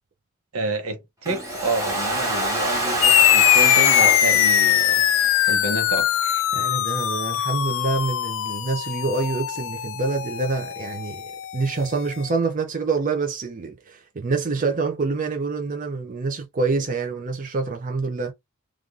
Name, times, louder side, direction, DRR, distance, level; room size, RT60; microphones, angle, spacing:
voice 1, 0.5-5.0 5.5-6.4, right 2 dB, 80° right, 0.9 m, -29 dB
Domestic sounds home sounds, 1.3-6.2, right 1 dB, 15° right, 1.9 m, -27 dB
sound 1, 3.0-11.9, left 13 dB, 65° left, 0.3 m, -21 dB
voice 2, 6.5-18.3, right 4 dB, 40° right, 0.5 m, -26 dB
3.3 x 2.4 x 2.4 m
head